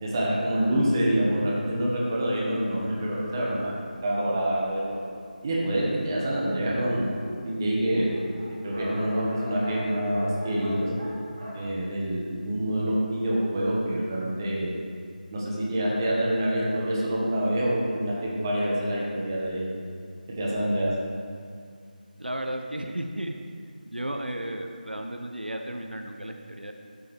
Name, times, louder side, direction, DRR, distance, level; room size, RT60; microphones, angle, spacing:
voice 1, 0.0-3.7 4.0-5.0 5.4-7.1 7.4-8.1 8.6-10.9 11.5-14.8 15.3-19.6 20.4-20.9, right 1 dB, 25° right, -5 dB, 1.4 m, -26 dB
Dog, 2.0-4.9 5.6-5.7 6.0-6.1 6.3-12.7, equal, 45° right, 1.9 m, -40 dB
voice 2, 22.2-23.3 23.8-26.7, right 1 dB, 90° right, 3 dB, 0.7 m, -34 dB
12.0 x 5.4 x 3.6 m, 2.2 s
figure-of-eight pair, 165°, 5 cm